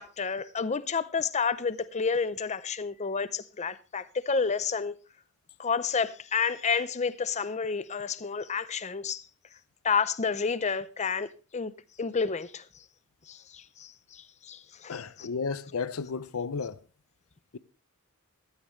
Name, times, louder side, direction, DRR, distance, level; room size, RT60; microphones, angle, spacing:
voice 1, 0.0-4.9 5.6-9.2 9.8-11.7 12.0-12.6 13.3-14.9 15.2-15.3, left 5 dB, 30° left, 0.6 m, -30 dB
voice 2, 14.9-16.8 17.5-17.6, left 5 dB, 70° left, 0.6 m, -33 dB
15.0 x 13.5 x 3.2 m
head